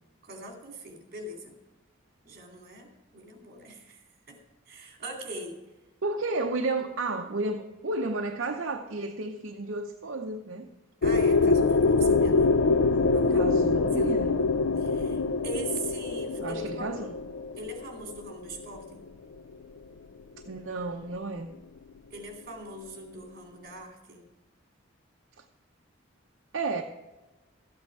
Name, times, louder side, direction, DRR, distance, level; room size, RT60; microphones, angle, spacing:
voice 1, 0.2-1.6 2.2-4.4 4.7-5.6 11.0-12.6 13.1-13.4 13.7-16.9 17.6-19.1 22.1-24.2, right 2 dB, 45° right, 2.5 m, -42 dB
voice 2, 6.0-10.7 13.3-14.4 16.4-17.1 20.5-21.5 26.5-26.8, right 2 dB, 65° right, 0.8 m, -32 dB
sound 1, 11.0-18.8, left 3 dB, 65° left, 0.4 m, -24 dB
13.5 x 8.8 x 4.8 m
head